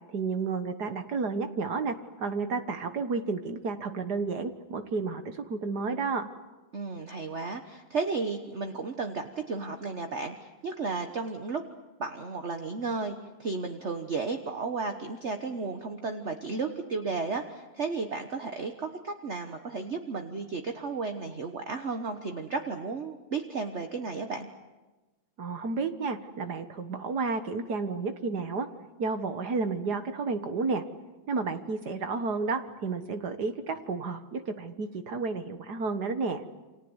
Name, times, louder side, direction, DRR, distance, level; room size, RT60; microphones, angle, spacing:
voice 1, 0.1-6.3 25.4-28.7 29.0-30.8 31.3-36.5, right 4 dB, 60° right, 9 dB, 1.9 m, -31 dB
voice 2, 6.7-11.6 12.0-24.5, right 4 dB, 40° right, 6 dB, 1.4 m, -33 dB
29.0 x 25.5 x 8.1 m, 1.2 s
omnidirectional pair, 2.0 m